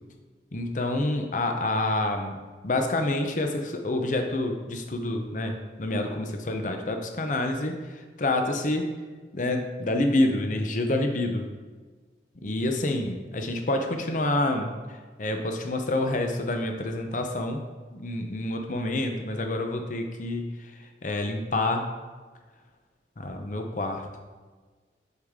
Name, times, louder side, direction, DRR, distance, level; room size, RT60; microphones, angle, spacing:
voice 1, 0.5-8.9 9.3-11.5 12.4-14.7 15.2-17.6 17.9-20.7 21.0-21.9 23.2-24.1, left 2 dB, 45° left, 5 dB, 0.7 m, -28 dB
8.2 x 6.4 x 3.6 m, 1.4 s
head